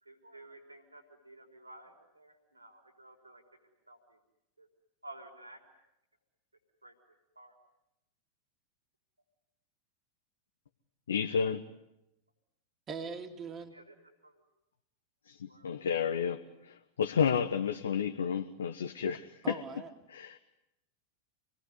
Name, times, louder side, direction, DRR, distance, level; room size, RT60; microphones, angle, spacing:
voice 1, 0.1-3.4 3.9-4.0 4.6-4.7 5.0-5.6 6.8-6.9 7.4-7.5 13.7-13.8 14.2-14.3 15.5-15.7, right 1 dB, 85° right, 5 dB, 4.0 m, -52 dB
voice 2, 11.1-11.7 15.3-19.6 20.1-20.4, left 7 dB, 65° left, 5 dB, 1.2 m, -31 dB
voice 3, 12.9-13.8 19.4-19.9, right 5 dB, 25° right, 3 dB, 2.4 m, -41 dB
28.0 x 20.5 x 9.6 m, 0.89 s
figure-of-eight pair, 90°, 0 cm